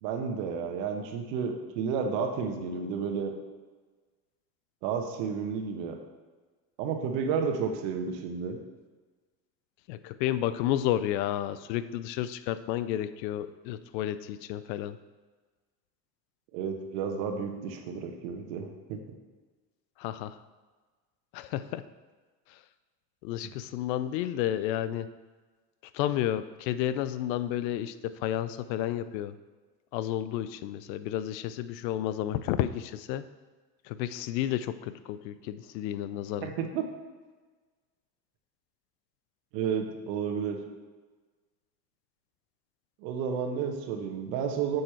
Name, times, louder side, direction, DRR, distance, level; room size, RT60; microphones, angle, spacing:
voice 1, 0.0-3.3 4.8-6.0 6.8-8.6 16.5-19.0 36.4-36.8 39.5-40.6 43.0-44.8, right 6 dB, 75° right, 4 dB, 1.3 m, -31 dB
voice 2, 9.9-15.0 20.0-20.4 21.3-21.8 23.2-25.1 25.9-29.3 29.9-33.2 33.9-36.5, left 12 dB, 80° left, 14 dB, 0.7 m, -31 dB
8.9 x 6.5 x 4.5 m, 1.3 s
hypercardioid pair, 70°, 50 cm